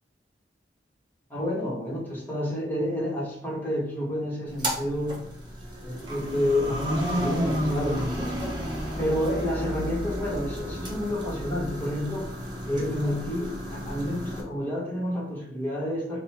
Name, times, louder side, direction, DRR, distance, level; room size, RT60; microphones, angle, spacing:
voice 1, 1.3-5.3 5.8-8.3 9.0-12.3 12.7-16.2, left 1 dB, 10° left, -5 dB, 1.3 m, -29 dB
sound 1, 4.5-14.4, equal, 25° right, 1.0 m, -32 dB
5.2 x 2.3 x 4.3 m, 0.68 s
head